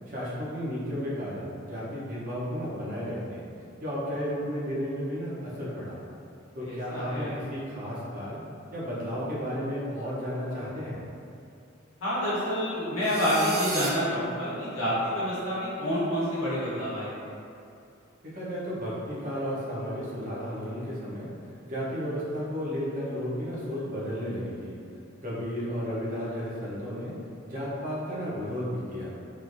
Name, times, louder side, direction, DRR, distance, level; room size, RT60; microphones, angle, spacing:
voice 1, 0.1-3.4 3.8-6.0 6.5-8.4 8.7-11.0 18.2-21.3 21.6-24.8 25.2-27.1 27.4-29.1, equal, 45° right, -8 dB, 0.7 m, -33 dB
voice 2, 6.6-7.3 12.0-17.3, equal, 75° left, -9 dB, 1.0 m, -28 dB
sound 1, 13.0-13.9, right 5 dB, 90° right, 0.4 m, -34 dB
3.1 x 2.4 x 2.5 m, 2.5 s
head